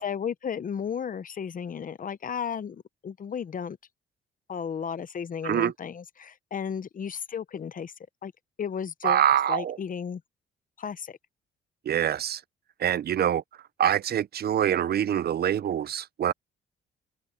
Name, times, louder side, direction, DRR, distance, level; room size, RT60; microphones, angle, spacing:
voice 1, 0.0-3.8 4.5-7.9 8.2-8.3 8.6-10.2 10.8-11.2, left 7 dB, 45° left, 0.9 m, -34 dB
voice 2, 9.0-9.8 11.9-12.4 12.8-13.4 13.8-16.3, right 10 dB, 55° right, 0.6 m, -25 dB
open air
cardioid pair, 90°, 20 cm